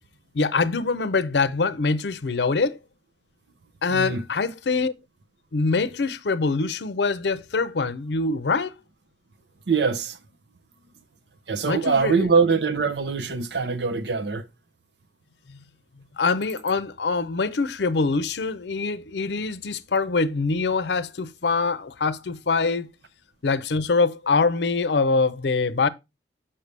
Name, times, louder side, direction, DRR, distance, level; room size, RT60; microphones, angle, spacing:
voice 1, 0.3-2.8 3.8-4.9 5.5-8.7 11.7-12.1 15.5-15.6 16.2-22.9 23.4-25.9, left 4 dB, 75° left, 0.6 m, -24 dB
voice 2, 3.9-4.2 9.7-10.2 11.5-14.5, right 5 dB, 75° right, 0.7 m, -23 dB
6.7 x 5.6 x 3.2 m
head